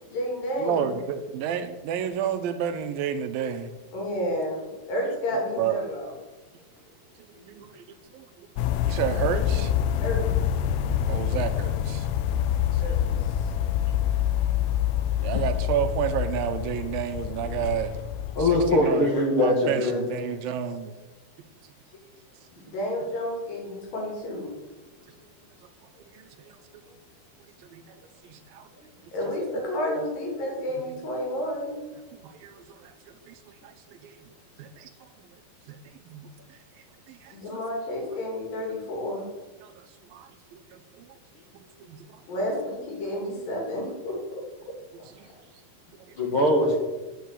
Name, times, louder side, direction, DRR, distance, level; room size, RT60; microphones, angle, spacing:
voice 1, 0.0-1.0 3.9-6.1 10.0-10.2 12.8-13.5 22.5-24.5 29.1-31.8 37.3-39.3 42.3-44.4, equal, 65° left, 0 dB, 4.5 m, -31 dB
voice 2, 0.6-3.7 5.6-5.8 7.4-7.8 8.1-9.7 11.0-12.1 12.7-13.0 15.2-17.9 18.4-19.1 19.4-20.9 26.1-26.6 27.7-27.8 28.2-28.6 30.9-31.0 32.2-32.9 33.3-33.4 33.6-33.7 34.0-34.1 34.6-35.1 35.7-35.8 36.1-36.3 37.1-37.6 39.6-39.8 40.1-41.1 41.5-42.2 45.2-45.3 46.1-46.2, right 9 dB, 80° right, 8 dB, 2.4 m, -31 dB
sound 1, 8.6-18.8, left 10 dB, 90° left, 2.5 m, -26 dB
voice 3, 18.4-20.1 46.2-46.8, left 1 dB, 45° left, 0 dB, 1.9 m, -22 dB
10.5 x 6.3 x 8.3 m, 1.2 s
omnidirectional pair, 4.3 m